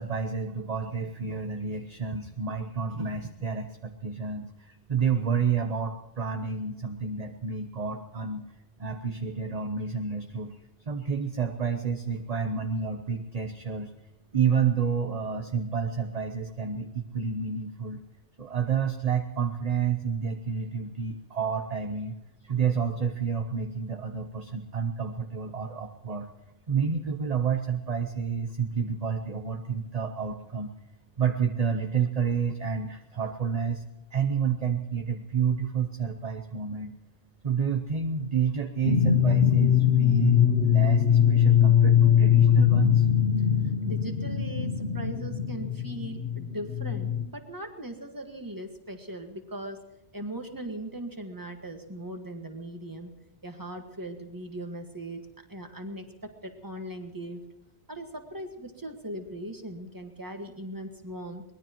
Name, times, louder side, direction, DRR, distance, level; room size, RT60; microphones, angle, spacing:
voice 1, 0.0-8.5 8.8-10.6 10.9-13.9 14.3-18.0 18.4-26.3 26.7-30.7 31.2-33.8 34.1-37.0 37.4-43.1, right 6 dB, 40° right, 6 dB, 0.9 m, -29 dB
sound 1, 38.8-47.2, left 9 dB, 75° left, 1.3 m, -22 dB
voice 2, 43.6-49.8 50.1-53.1 53.4-57.4 57.9-61.4, right 1 dB, 20° right, 5 dB, 1.7 m, -39 dB
23.5 x 20.0 x 3.0 m, 0.96 s
omnidirectional pair, 1.1 m